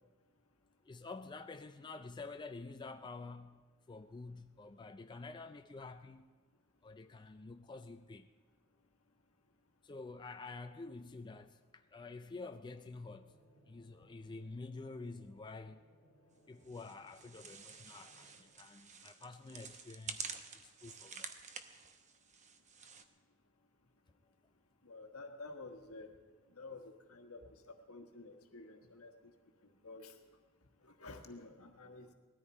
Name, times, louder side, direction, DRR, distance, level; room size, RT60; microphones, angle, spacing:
voice 1, 0.8-3.6 3.9-6.3 6.8-8.3 9.8-13.4 13.7-15.8 16.5-21.3, left 3 dB, 20° left, 7 dB, 0.4 m, -49 dB
sound 1, 12.9-18.5, right 1 dB, 70° right, 5.9 m, -68 dB
sound 2, 16.6-23.0, right 6 dB, 35° right, 0.9 m, -49 dB
voice 2, 24.8-26.1 26.5-29.1 29.8-30.1 30.8-32.1, left 3 dB, 75° left, 4 dB, 1.5 m, -51 dB
20.0 x 13.5 x 4.4 m, 1.4 s
head